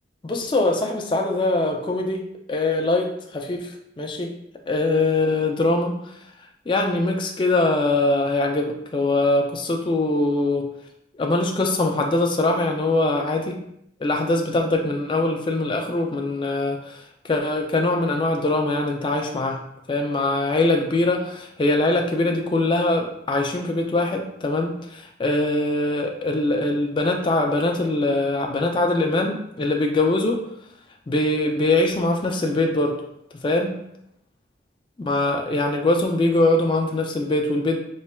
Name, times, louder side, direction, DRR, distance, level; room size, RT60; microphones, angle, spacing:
voice 1, 0.2-2.2 2.5-4.3 4.7-6.1 6.7-10.7 11.1-13.6 14.0-19.6 19.9-30.4 31.1-33.0 33.4-33.8 35.0-37.8, left 2 dB, 25° left, 2 dB, 0.3 m, -22 dB
4.2 x 3.1 x 2.2 m, 0.76 s
head